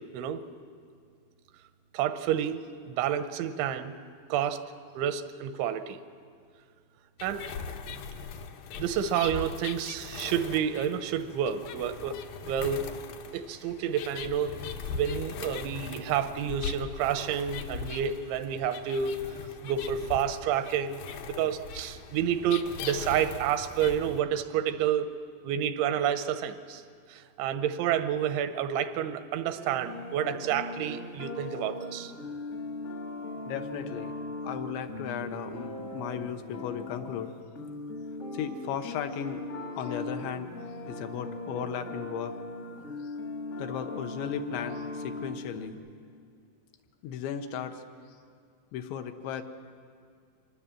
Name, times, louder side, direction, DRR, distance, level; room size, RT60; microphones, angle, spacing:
voice 1, 1.9-3.9 4.3-4.6 5.0-6.0 7.2-7.5 8.8-12.2 12.4-12.9 13.3-14.6 14.9-19.2 19.6-25.1 25.4-26.8 27.1-32.1, right 9 dB, 85° right, 10 dB, 3.2 m, -29 dB
sound 1, 7.2-24.2, left 5 dB, 70° left, 2.3 m, -40 dB
sound 2, 29.6-45.7, left 2 dB, 40° left, 1.0 m, -39 dB
voice 2, 33.4-34.1 34.4-37.3 38.3-39.4 39.8-40.5 40.9-42.3 43.0-43.1 43.6-45.8 47.0-48.2 48.7-49.4, left 8 dB, 85° left, 7 dB, 3.2 m, -36 dB
25.5 x 20.0 x 7.5 m, 2.2 s
omnidirectional pair, 5.2 m